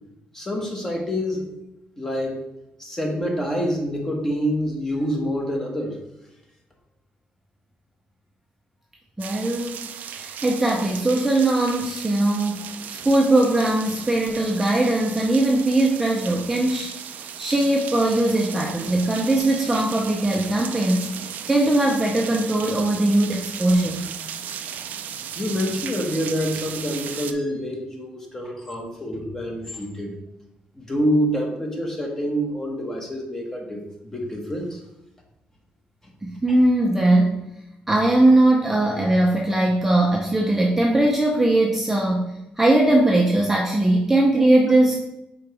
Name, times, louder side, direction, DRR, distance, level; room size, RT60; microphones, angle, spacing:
voice 1, 0.3-1.5 2.0-2.4 2.8-6.0 24.5-24.7 25.3-30.2 30.7-34.8, equal, 15° left, 1 dB, 1.1 m, -27 dB
voice 2, 9.2-21.1 21.5-24.0 36.2-37.4 37.9-42.3 42.6-44.9, right 1 dB, 10° right, -1 dB, 0.6 m, -20 dB
sound 1, 9.2-27.3, right 8 dB, 65° right, 0.4 m, -36 dB
5.1 x 3.9 x 4.7 m, 0.90 s
cardioid pair, 145°, 3 cm